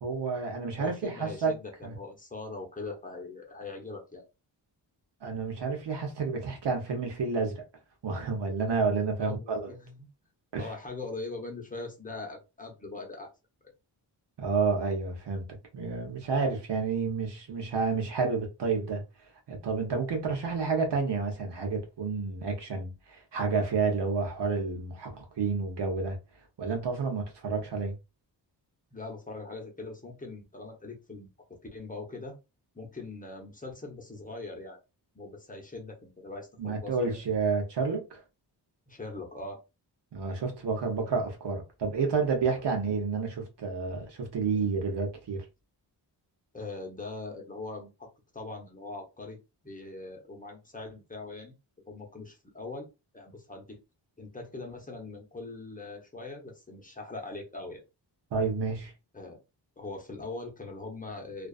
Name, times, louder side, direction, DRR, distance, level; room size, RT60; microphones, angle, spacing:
voice 1, 0.0-1.5 1.8-2.0 5.2-7.6 8.0-9.7 10.5-10.7 14.4-15.5 15.7-19.0 19.5-26.2 26.6-28.0 36.6-38.2 40.1-45.5 58.3-58.9, right 4 dB, 70° right, 1.0 m, -30 dB
voice 2, 0.8-4.2 9.2-10.0 10.5-13.3 28.9-31.3 31.7-32.4 32.7-34.8 35.1-37.2 38.9-39.6 44.5-44.6 46.5-48.1 48.3-49.4 49.6-51.5 51.9-52.9 53.1-53.8 54.2-57.8 59.1-59.4 59.8-61.5, left 3 dB, 20° left, 0.9 m, -41 dB
2.5 x 2.3 x 2.3 m
cardioid pair, 80°, 43 cm